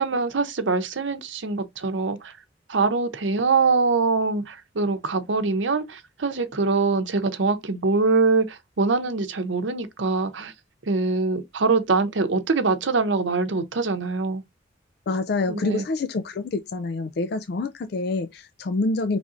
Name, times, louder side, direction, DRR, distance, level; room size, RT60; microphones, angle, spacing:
voice 1, 0.0-2.3 2.7-10.5 10.9-14.4 15.5-15.8, right 4 dB, 90° right, 0.7 m, -23 dB
voice 2, 15.1-19.2, left 3 dB, 60° left, 0.4 m, -27 dB
4.9 x 3.4 x 2.6 m
head